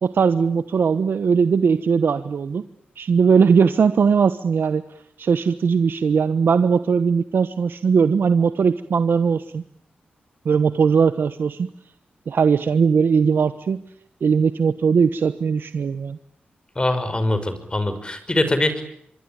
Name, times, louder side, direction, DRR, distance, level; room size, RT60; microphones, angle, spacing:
voice 1, 0.0-2.6 3.0-4.8 5.2-9.6 10.4-11.7 12.3-13.8 14.2-16.2, right 6 dB, 70° right, 11 dB, 1.2 m, -19 dB
voice 2, 16.8-18.8, left 1 dB, 25° left, 11 dB, 5.7 m, -22 dB
25.5 x 24.0 x 8.9 m, 0.69 s
cardioid pair, 65°, 4 cm